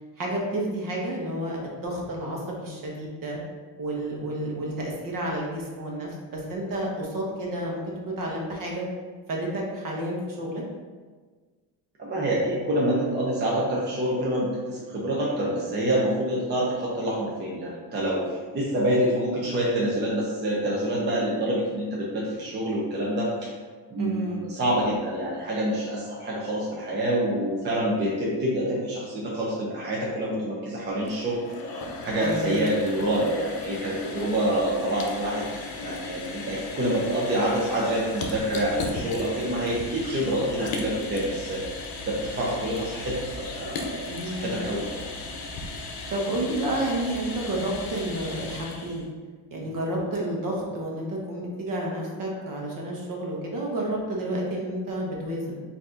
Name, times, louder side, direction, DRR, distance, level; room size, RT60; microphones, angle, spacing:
voice 1, 0.2-3.4 3.8-8.9 9.3-10.6 24.0-24.4 32.2-32.6 44.0-44.6 46.1-49.1 49.5-55.6, right 1 dB, 50° right, -2 dB, 1.1 m, -30 dB
voice 2, 12.0-23.5 23.9-31.4 32.0-35.4 35.8-41.6 42.1-44.1 44.3-44.9, right 1 dB, 25° right, -5 dB, 0.7 m, -27 dB
sound 1, 30.8-49.1, left 3 dB, 55° left, 0.7 m, -36 dB
4.6 x 2.8 x 3.8 m, 1.5 s
cardioid pair, 150°, 43 cm